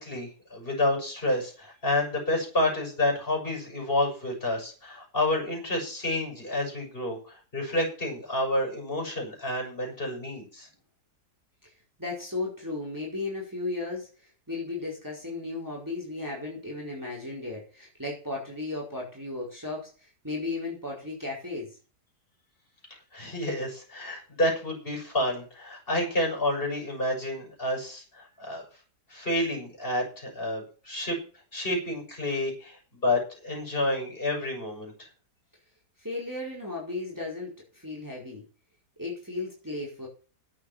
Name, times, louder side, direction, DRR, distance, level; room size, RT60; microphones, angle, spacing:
voice 1, 0.0-7.2 7.5-10.7 23.1-28.6 29.1-31.2 31.5-34.9, left 1 dB, 35° left, 1 dB, 6.7 m, -29 dB
voice 2, 12.0-14.1 14.5-21.8 36.0-38.4 39.0-40.1, left 3 dB, 10° right, -3 dB, 4.7 m, -35 dB
12.0 x 8.5 x 7.4 m, 0.36 s
omnidirectional pair, 1.8 m